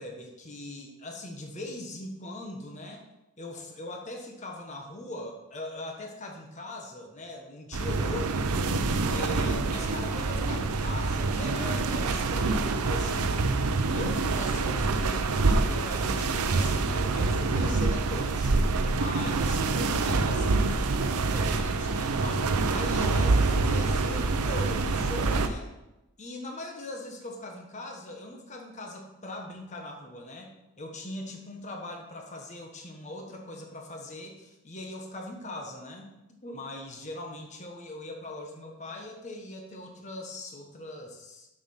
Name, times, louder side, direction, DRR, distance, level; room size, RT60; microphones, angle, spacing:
voice 1, 0.0-3.1 3.4-8.6 9.1-13.4 13.9-25.7 26.2-30.5 30.8-41.5, left 1 dB, 30° left, 2 dB, 1.2 m, -40 dB
sound 1, 7.7-25.5, right 3 dB, 90° right, 0.7 m, -26 dB
7.1 x 6.6 x 5.6 m, 0.96 s
head